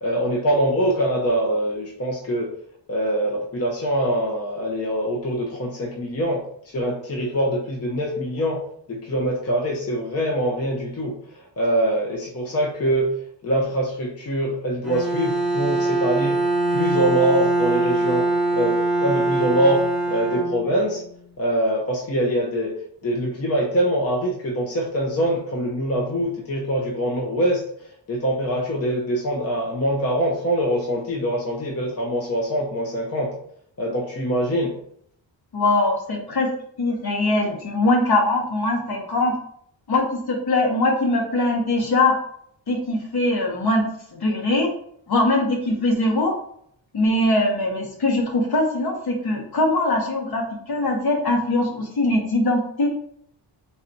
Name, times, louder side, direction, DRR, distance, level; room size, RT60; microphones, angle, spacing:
voice 1, 0.0-2.5 2.9-8.6 8.9-13.1 13.4-16.4 16.7-21.0 21.4-22.7 23.0-27.7 28.1-33.3 33.8-34.7, right 1 dB, 35° left, -1 dB, 0.7 m, -24 dB
Bowed string instrument, 14.8-21.0, right 2 dB, ahead, 1.0 m, -22 dB
voice 2, 35.5-36.5 36.8-39.3 39.9-42.2 42.7-43.8 44.1-44.7 45.1-46.3 46.9-52.9, left 2 dB, 55° left, 1 dB, 1.2 m, -21 dB
4.1 x 2.6 x 4.5 m, 0.66 s
wide cardioid pair, 160°, 45 cm